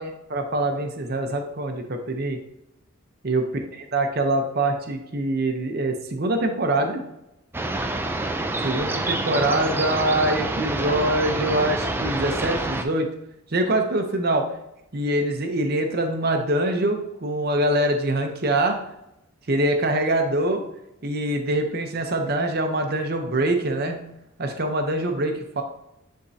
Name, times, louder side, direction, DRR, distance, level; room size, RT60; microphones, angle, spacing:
voice 1, 0.0-2.4 3.2-3.5 3.7-7.0 8.6-13.1 13.5-14.5 14.9-18.8 19.5-20.6 21.0-24.0 24.4-25.6, right 1 dB, 45° right, 5 dB, 0.8 m, -24 dB
sound 1, 7.5-12.8, right 2 dB, 10° right, 0.3 m, -27 dB
9.8 x 3.7 x 2.8 m, 0.84 s
head